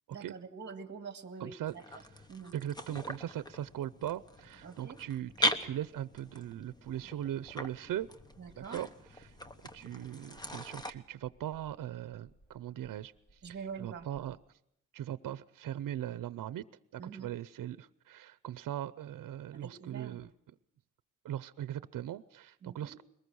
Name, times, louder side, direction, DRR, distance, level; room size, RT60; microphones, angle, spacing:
voice 1, 0.1-2.0 2.3-2.5 4.6-5.0 8.4-8.8 13.4-14.1 17.0-17.3 19.5-20.2 22.6-23.0, right 6 dB, 35° right, 9 dB, 1.9 m, -45 dB
voice 2, 1.4-2.0 2.5-8.1 8.6-8.9 9.2-9.3 9.7-13.1 13.5-14.4 14.9-16.7 17.0-20.3 21.2-23.0, right 11 dB, 80° right, 16 dB, 0.7 m, -39 dB
sound 1, 1.7-10.9, left 1 dB, 10° left, 1.0 m, -40 dB
sound 2, 4.9-14.4, equal, 35° left, 6.5 m, -65 dB
22.5 x 20.0 x 6.3 m, 0.76 s
wide cardioid pair, 175°, 32 cm